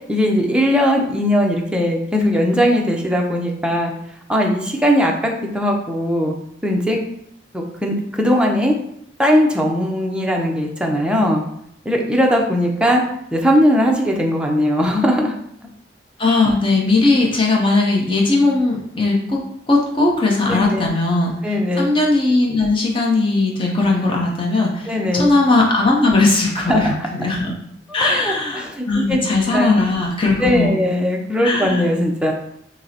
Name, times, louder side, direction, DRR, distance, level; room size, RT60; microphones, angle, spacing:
voice 1, 0.1-3.9 4.3-6.3 6.6-7.0 7.5-8.7 9.2-11.4 11.9-13.0 13.3-15.3 20.5-20.9 21.4-21.9 24.9-25.3 26.7-26.8 28.0-29.2 29.5-29.8 30.4-32.3, equal, 5° right, 0 dB, 0.5 m, -19 dB
voice 2, 16.2-19.4 19.7-21.3 21.8-27.5 27.9-30.8 31.4-31.9, left 2 dB, 30° left, -2 dB, 0.7 m, -18 dB
5.3 x 2.0 x 2.8 m, 0.73 s
head